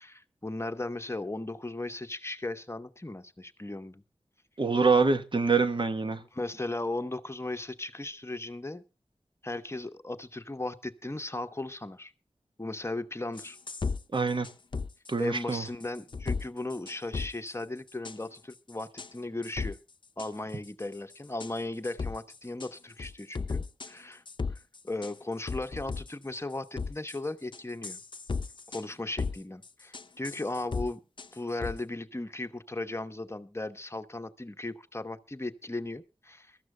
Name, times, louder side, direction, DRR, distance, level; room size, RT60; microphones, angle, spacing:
voice 1, 0.0-4.0 6.3-8.8 9.4-12.1 12.6-13.6 15.2-19.8 20.2-24.2 24.5-24.6 24.8-28.0 28.7-31.0 31.3-36.6, left 2 dB, 25° left, 1.0 m, -36 dB
voice 2, 4.6-6.2 14.1-14.5 15.1-15.6, right 4 dB, 55° right, 1.1 m, -25 dB
sound 1, 13.4-14.0 14.4-15.1 15.5-16.4 16.7-17.5 17.9-18.2 18.5-19.1 19.4-19.7 20.2-20.3 20.6-21.1 21.4-21.6 21.8-22.7 23.0-23.9 24.3-25.1 25.5-26.4 26.8-27.2 27.5-28.8 29.2-29.4 29.6-30.9 31.2-31.3 31.6-31.8, left 4 dB, 55° left, 0.6 m, -35 dB
22.5 x 13.5 x 2.2 m
cardioid pair, 50°, 10 cm